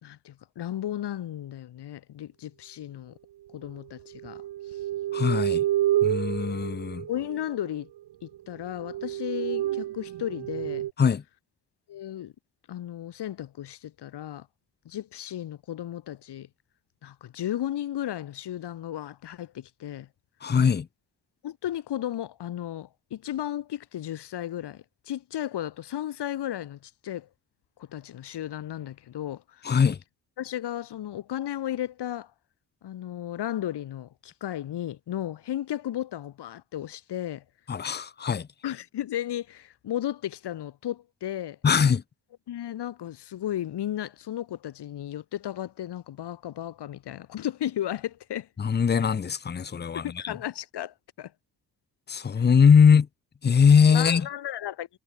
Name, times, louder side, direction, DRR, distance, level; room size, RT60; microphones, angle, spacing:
voice 1, 0.0-3.1 3.5-4.4 4.7-4.8 7.1-7.9 8.2-10.9 11.9-12.3 12.7-14.5 14.9-16.5 17.0-20.1 21.4-27.3 27.8-29.8 30.4-32.3 32.8-37.4 38.6-41.6 42.5-48.5 49.9-51.3 53.9-54.9, left 12 dB, 80° left, 2.3 m, -34 dB
sound 1, 4.1-7.8 8.3-8.4 8.8-10.9, right 13 dB, 85° right, 1.3 m, -29 dB
voice 2, 5.1-5.6 6.0-7.1 11.0-11.2 20.4-20.9 29.6-30.0 37.7-38.5 41.6-42.0 48.6-50.3 52.1-53.1 53.4-54.3, left 6 dB, 25° left, 0.6 m, -21 dB
cardioid pair, 90°, 40 cm